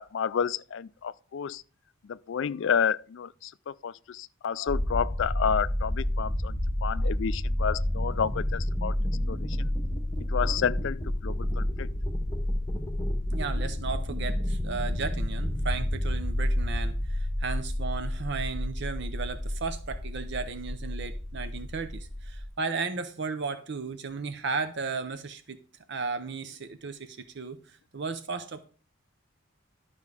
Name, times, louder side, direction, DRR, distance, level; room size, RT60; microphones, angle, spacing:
voice 1, 0.0-1.6 2.1-8.9 9.3-9.7 10.3-11.9, left 7 dB, 60° left, 0.3 m, -30 dB
sound 1, 4.7-22.5, left 1 dB, 10° left, 1.7 m, -30 dB
voice 2, 13.3-25.6 25.9-28.7, right 4 dB, 55° right, 0.6 m, -35 dB
11.5 x 5.4 x 4.9 m
head